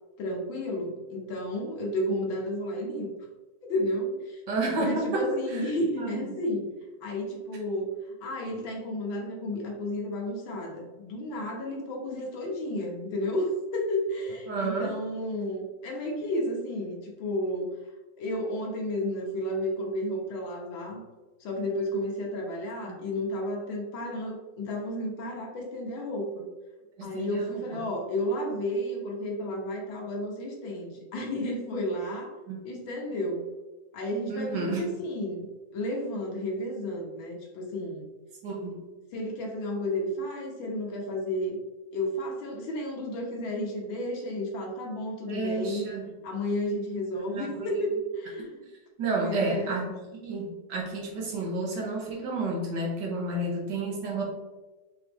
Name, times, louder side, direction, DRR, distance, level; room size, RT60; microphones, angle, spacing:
voice 1, 0.2-3.1 3.7-4.4 4.8-6.7 7.0-17.8 18.2-21.0 21.4-26.4 27.0-32.3 32.7-33.4 33.9-35.5 35.7-38.1 39.1-41.6 41.9-45.9 46.2-48.6 49.0-49.7, left 1 dB, 85° left, 0 dB, 1.8 m, -32 dB
voice 2, 4.5-5.6 6.0-6.3 14.5-14.9 27.0-27.6 32.5-32.6 34.3-35.0 38.4-38.8 45.3-46.1 47.1-47.8 49.0-54.2, right 2 dB, 65° right, -2 dB, 1.6 m, -31 dB
4.9 x 3.0 x 3.4 m, 1.2 s
omnidirectional pair, 2.1 m